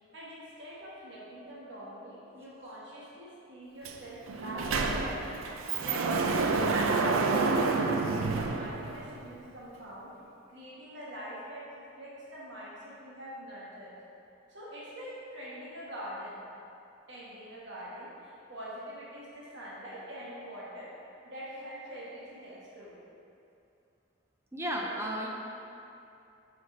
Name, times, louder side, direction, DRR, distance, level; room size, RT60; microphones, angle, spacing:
voice 1, 0.1-5.4 5.8-6.9 7.3-10.2 10.5-13.9 14.5-16.4 17.1-20.9 21.2-23.0 24.8-25.0, equal, 60° right, -7 dB, 1.2 m, -44 dB
Sliding door, 3.8-4.0 4.3-9.3, right 3 dB, 90° right, 0.4 m, -29 dB
voice 2, 24.5-25.3, equal, 10° right, -1 dB, 0.5 m, -33 dB
5.9 x 4.9 x 4.1 m, 2.7 s
head